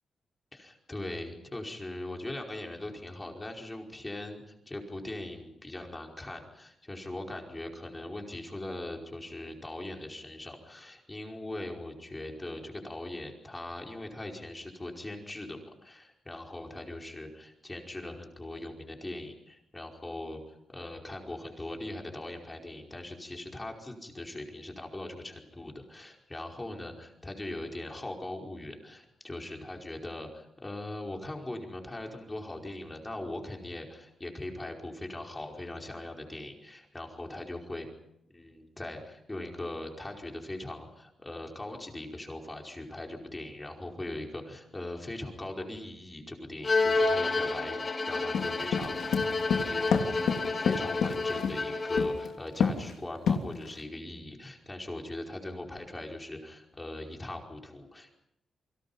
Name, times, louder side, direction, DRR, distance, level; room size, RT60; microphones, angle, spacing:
voice 1, 0.5-37.9 38.3-47.8 48.1-58.2, left 1 dB, 15° left, 1 dB, 5.0 m, -40 dB
Bowed string instrument, 46.6-52.3, left 3 dB, 35° left, 5.2 m, -29 dB
sound 1, 48.3-51.6 52.0-52.3 52.6-52.9 53.3-53.8, left 6 dB, 85° left, 3.1 m, -27 dB
29.5 x 24.5 x 5.7 m, 0.82 s
cardioid pair, 120°, 0 cm